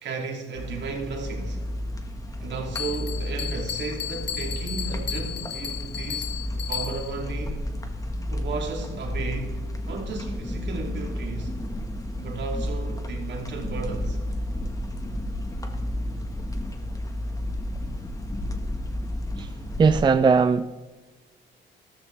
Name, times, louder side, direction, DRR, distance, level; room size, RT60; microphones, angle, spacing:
voice 1, 0.0-1.6 2.4-7.7 8.3-11.5 12.2-14.2, right 4 dB, 65° right, 2.4 m, -34 dB
sound 1, 0.6-20.0, left 1 dB, 15° left, 1.3 m, -32 dB
Bell, 2.8-7.3, left 10 dB, 60° left, 0.9 m, -34 dB
voice 2, 19.8-20.7, right 5 dB, 20° right, 0.4 m, -19 dB
13.5 x 13.0 x 3.3 m
cardioid pair, 90°, 20 cm